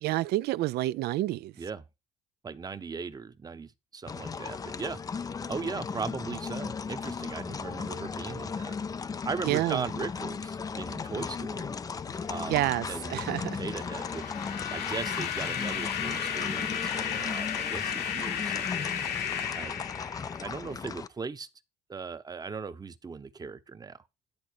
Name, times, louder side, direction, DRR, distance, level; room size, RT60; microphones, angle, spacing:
voice 1, 0.0-1.5 9.4-9.8 12.5-13.6, right 16 dB, 75° right, 0.4 m, -28 dB
voice 2, 2.4-5.0 5.5-8.7 9.0-11.7 12.3-13.2 13.5-14.2 14.7-19.1 19.5-19.8 20.4-21.5 21.9-24.0, right 5 dB, 25° right, 0.8 m, -38 dB
sound 1, 4.1-21.1, left 5 dB, 20° left, 0.4 m, -36 dB
sound 2, 12.0-18.4, left 6 dB, 90° left, 6.3 m, -53 dB
sound 3, 13.6-20.7, left 8 dB, 70° left, 1.4 m, -34 dB
10.5 x 3.8 x 6.5 m
cardioid pair, 110°, 17 cm